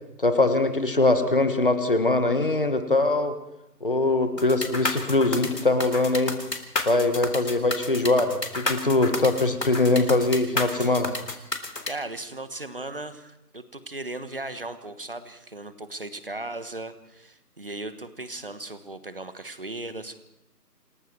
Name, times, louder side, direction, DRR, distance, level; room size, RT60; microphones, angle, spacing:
voice 1, 0.2-3.3 3.8-6.4 6.8-11.1, left 2 dB, 30° left, 8 dB, 1.6 m, -22 dB
sound 1, 4.4-11.9, left 2 dB, 75° left, 3.7 m, -30 dB
voice 2, 11.8-20.2, right 2 dB, 35° right, 11 dB, 1.3 m, -37 dB
28.5 x 20.0 x 4.7 m, 0.87 s
figure-of-eight pair, 170°, 49 cm